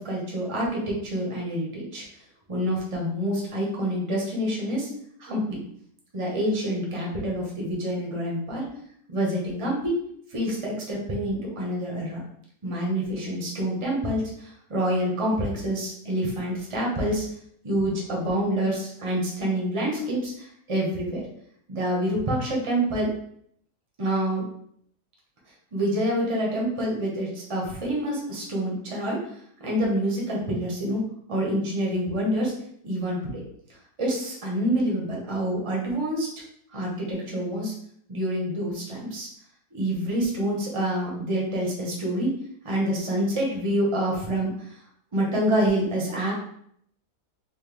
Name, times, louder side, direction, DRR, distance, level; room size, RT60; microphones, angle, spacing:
voice 1, 0.0-2.0 2.5-4.9 5.2-5.6 6.1-8.7 9.1-9.9 10.3-12.2 12.6-17.2 17.6-21.2 21.7-23.1 24.0-24.4 25.7-29.2 29.6-31.0 31.3-32.5 32.8-33.4 34.0-36.3 36.7-37.7 38.1-39.3 39.7-42.4 42.6-44.5 45.1-46.3, right 1 dB, 20° right, -3 dB, 1.0 m, -27 dB
4.3 x 2.8 x 3.4 m, 0.68 s
omnidirectional pair, 1.8 m